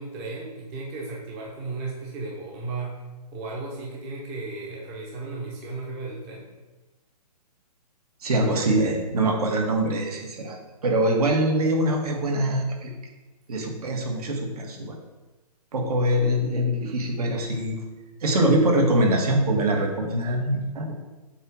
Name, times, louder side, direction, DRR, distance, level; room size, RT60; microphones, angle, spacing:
voice 1, 0.0-3.0 3.3-6.5, right 3 dB, 20° right, -3 dB, 0.8 m, -35 dB
voice 2, 8.2-12.9 13.5-15.0 15.7-17.8 18.2-20.9, right 1 dB, 65° right, 1 dB, 1.7 m, -23 dB
7.8 x 3.1 x 6.0 m, 1.2 s
hypercardioid pair, 165°, 21 cm